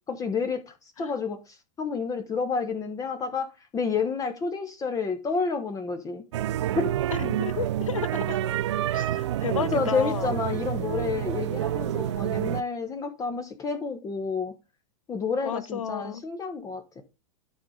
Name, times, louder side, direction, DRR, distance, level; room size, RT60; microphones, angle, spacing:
voice 1, 0.1-1.4 1.8-6.2 6.8-6.9 9.7-14.5 15.1-17.0, left 5 dB, 20° left, 1.1 m, -29 dB
sound 1, 6.3-12.6, right 12 dB, 55° right, 0.5 m, -28 dB
voice 2, 7.1-8.4 8.9-10.4 15.4-16.2, left 8 dB, 70° left, 0.8 m, -32 dB
12.5 x 4.9 x 3.8 m
figure-of-eight pair, 100°, 17 cm